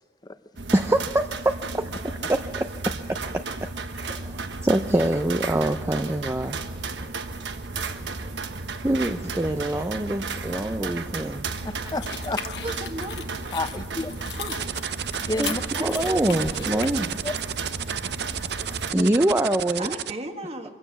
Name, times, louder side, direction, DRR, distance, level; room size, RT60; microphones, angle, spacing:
sound 1, 0.6-18.9, right 3 dB, 90° right, 1.3 m, -34 dB
voice 1, 0.7-3.7 3.9-6.6 8.8-11.5 15.4-15.5 15.8-17.1 18.9-19.9, right 1 dB, 15° right, 7 dB, 0.6 m, -25 dB
voice 2, 11.6-12.4 13.5-14.1 15.3-15.9 16.7-16.8 17.2-17.3 18.9-19.1, left 2 dB, 25° left, 11 dB, 0.8 m, -30 dB
sound 2, 11.9-16.9, left 8 dB, 75° left, 1.1 m, -38 dB
voice 3, 12.6-13.4 14.4-14.6 15.8-17.0 19.8-20.7, right 1 dB, 35° right, 5 dB, 1.8 m, -35 dB
sound 3, 14.6-20.1, right 9 dB, 70° right, 0.6 m, -31 dB
24.5 x 16.0 x 7.3 m, 1.3 s
head